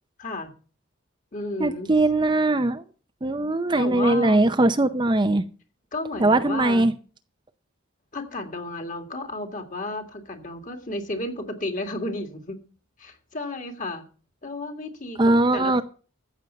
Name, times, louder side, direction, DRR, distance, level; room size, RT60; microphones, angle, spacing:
voice 1, 0.2-0.5 1.3-1.9 3.8-4.5 5.9-6.9 8.1-12.6 13.0-14.0 14.4-15.8, left 2 dB, 40° left, 6 dB, 2.1 m, -33 dB
voice 2, 1.6-2.8 3.2-5.5 6.2-6.9 15.2-15.8, right 2 dB, 20° right, 9 dB, 0.5 m, -20 dB
14.5 x 8.0 x 5.7 m, 0.38 s
head